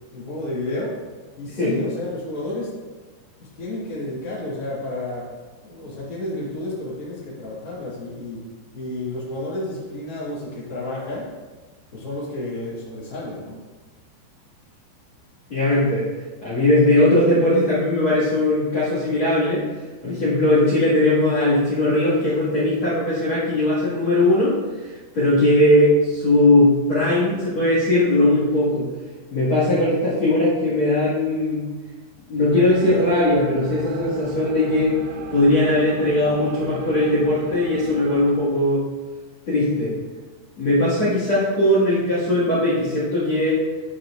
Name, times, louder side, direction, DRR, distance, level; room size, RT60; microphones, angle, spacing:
voice 1, 0.1-0.9 1.4-2.7 3.6-5.3 5.6-8.4 8.7-11.3 11.9-13.6, left 1 dB, 35° left, -8 dB, 1.6 m, -31 dB
voice 2, 15.5-16.1 16.4-19.7 20.0-24.6 25.1-28.9 29.3-31.7 32.3-35.0 35.3-38.8 39.5-39.9 40.6-43.6, left 1 dB, 50° left, -11 dB, 1.5 m, -19 dB
sound 1, 32.5-38.3, right 4 dB, 80° right, 2.5 m, -38 dB
12.0 x 4.4 x 2.5 m, 1.3 s
omnidirectional pair, 5.3 m